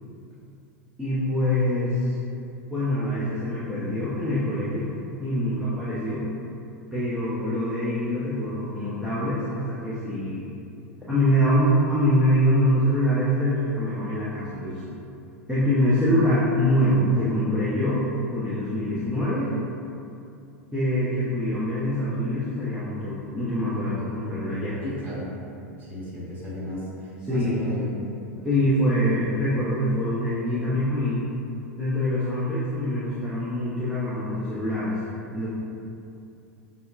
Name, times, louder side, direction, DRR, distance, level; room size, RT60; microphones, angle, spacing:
voice 1, 1.0-2.1 2.7-6.2 6.9-10.5 11.0-14.9 15.5-18.0 18.3-19.5 20.7-24.8 27.2-27.5 28.4-31.3 31.8-35.0 35.3-35.5, equal, 5° right, -11 dB, 0.6 m, -24 dB
voice 2, 24.8-25.3 25.8-27.9, equal, 25° right, -9 dB, 1.4 m, -34 dB
5.3 x 2.1 x 2.4 m, 2.7 s
figure-of-eight pair, 90°, 8 cm